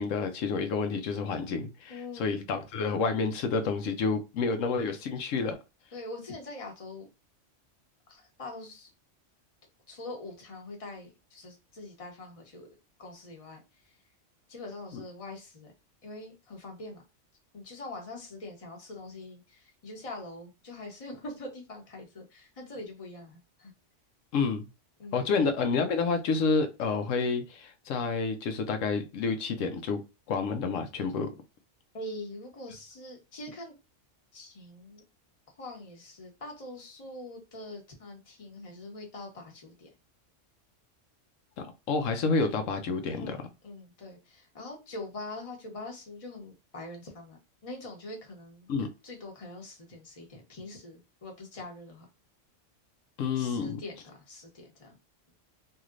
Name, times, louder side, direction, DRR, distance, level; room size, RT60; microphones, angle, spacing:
voice 1, 0.0-5.6 24.3-24.7 25.1-30.0 30.3-31.3 41.6-43.4 48.7-48.9 53.2-53.8, left 4 dB, 85° left, 7 dB, 1.0 m, -29 dB
voice 2, 1.9-2.5 5.9-7.1 8.1-8.9 9.9-12.7 13.0-14.0 14.5-15.7 16.0-17.0 17.5-23.7 25.0-25.2 31.9-33.7 34.3-35.0 35.6-39.9 43.1-48.7 49.0-52.1 53.3-55.0, left 2 dB, 30° left, 1 dB, 0.9 m, -43 dB
3.1 x 2.8 x 2.4 m, 0.27 s
omnidirectional pair, 1.3 m